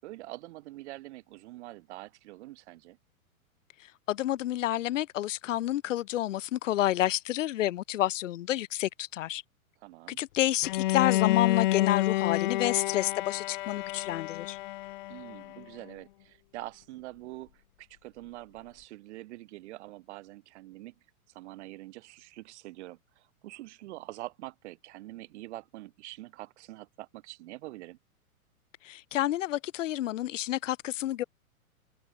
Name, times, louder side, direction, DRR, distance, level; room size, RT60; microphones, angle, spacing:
voice 1, 0.0-3.0 9.8-10.2 15.1-20.9 21.3-28.0, right 18 dB, 50° right, 5.8 m, -45 dB
voice 2, 4.1-9.4 10.1-14.6 28.8-31.2, left 13 dB, 60° left, 1.0 m, -29 dB
Bowed string instrument, 10.6-15.6, left 17 dB, 35° left, 0.4 m, -29 dB
hypercardioid pair, 115°, 43 cm